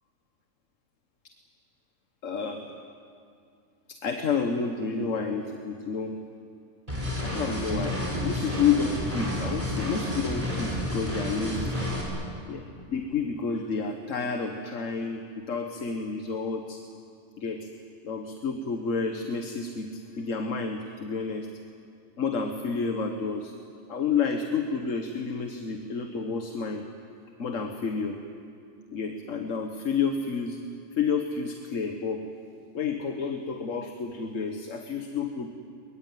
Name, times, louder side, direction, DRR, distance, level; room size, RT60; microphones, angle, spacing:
voice 1, 2.2-2.7 3.9-6.2 7.2-11.8 12.5-16.8 17.4-17.7 18.0-21.5 22.2-23.5 23.9-26.8 27.4-28.2 28.9-30.6 31.0-32.2 32.7-35.5, left 5 dB, 85° left, 5 dB, 1.6 m, -30 dB
sound 1, 6.9-12.0, equal, 30° right, 5.6 m, -30 dB
23.0 x 22.5 x 9.3 m, 2.4 s
omnidirectional pair, 1.3 m